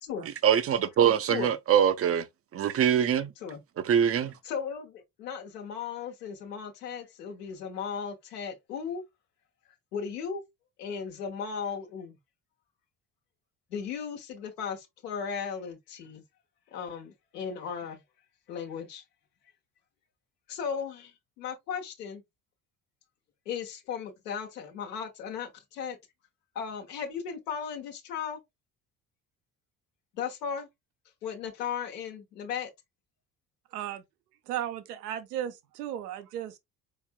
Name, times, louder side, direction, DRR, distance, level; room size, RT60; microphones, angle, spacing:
voice 1, 0.4-2.3 2.5-3.3 3.8-4.3, right 9 dB, 30° right, 0.6 m, -23 dB
voice 2, 4.4-9.0 9.9-10.4 10.8-12.2 13.7-16.2 16.7-18.0 18.5-19.0 20.5-22.2 23.4-26.0 26.5-28.4 30.1-30.7 31.2-32.7, left 7 dB, 70° left, 1.2 m, -36 dB
voice 3, 33.7-34.0 34.5-36.6, right 11 dB, 70° right, 0.8 m, -35 dB
5.3 x 4.4 x 2.3 m
figure-of-eight pair, 50°, 49 cm